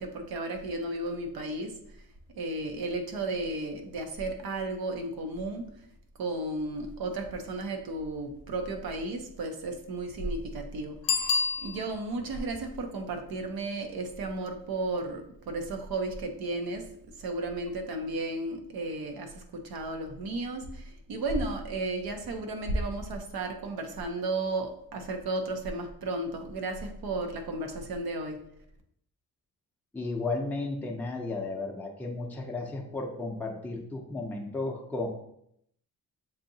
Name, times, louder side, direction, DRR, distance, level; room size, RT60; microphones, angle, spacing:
voice 1, 0.0-2.0 2.3-5.7 6.2-11.3 11.6-16.9 17.2-28.4, right 2 dB, 80° right, 5 dB, 0.8 m, -34 dB
Bicycle bell, 11.0-12.2 17.7-17.8, left 5 dB, 70° left, 0.6 m, -29 dB
voice 2, 29.9-35.1, left 2 dB, 5° left, -1 dB, 0.5 m, -34 dB
7.1 x 2.7 x 2.7 m, 0.73 s
wide cardioid pair, 165°, 36 cm